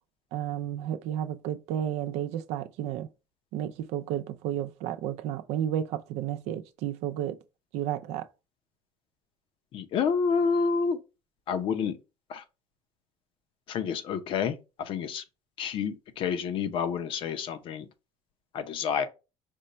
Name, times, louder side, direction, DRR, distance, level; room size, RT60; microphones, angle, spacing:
voice 1, 0.3-3.1 3.5-7.4 7.7-8.3, right 10 dB, 85° right, 0.5 m, -32 dB
voice 2, 9.7-11.0 11.5-12.0 12.3-12.4 13.7-15.2 15.6-17.9 18.5-19.1, left 6 dB, 50° left, 0.6 m, -29 dB
5.2 x 2.2 x 4.0 m
cardioid pair, 150°, 11 cm